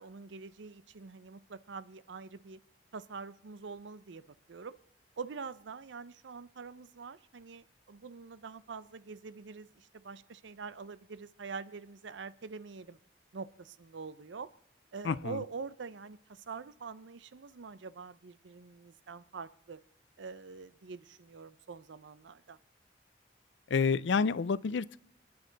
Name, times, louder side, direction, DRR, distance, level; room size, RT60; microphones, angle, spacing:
voice 1, 0.0-2.6 2.9-4.8 5.2-13.0 13.3-14.5 14.9-19.8 20.2-22.6, right 5 dB, 85° right, 0.6 m, -45 dB
voice 2, 15.0-15.4 23.7-25.0, left 5 dB, 85° left, 0.4 m, -29 dB
27.0 x 9.6 x 3.9 m
head